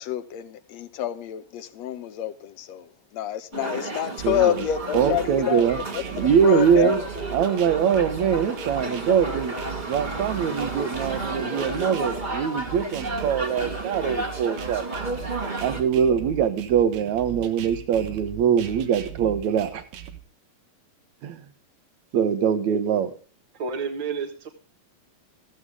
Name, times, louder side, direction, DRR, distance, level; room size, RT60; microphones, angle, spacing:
voice 1, 0.0-7.1, left 11 dB, 70° left, 1.9 m, -28 dB
sound 1, 3.5-15.8, right 2 dB, 20° right, 1.6 m, -32 dB
voice 2, 4.2-4.6 4.9-5.8 6.1-7.0 7.3-9.5 9.9-14.9 15.6-19.8 21.2-21.4 22.1-23.1, right 7 dB, 65° right, 2.5 m, -23 dB
sound 2, 4.2-20.2, right 10 dB, 90° right, 3.1 m, -39 dB
voice 3, 23.5-24.5, right 5 dB, 45° right, 1.9 m, -30 dB
15.0 x 14.5 x 3.6 m
omnidirectional pair, 3.8 m